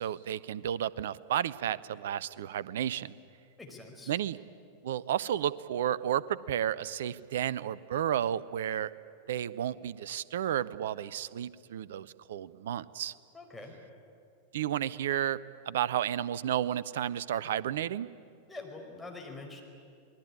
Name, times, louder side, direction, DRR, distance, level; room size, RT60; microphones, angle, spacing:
voice 1, 0.0-3.1 4.1-4.4 4.8-8.9 9.3-13.1 14.5-15.4 15.7-18.1, right 10 dB, 60° right, 19 dB, 0.7 m, -32 dB
voice 2, 3.6-4.1 13.3-13.8 18.5-19.6, left 3 dB, 5° left, 0 dB, 4.9 m, -45 dB
28.0 x 20.0 x 9.8 m, 2.4 s
figure-of-eight pair, 90°, 0 cm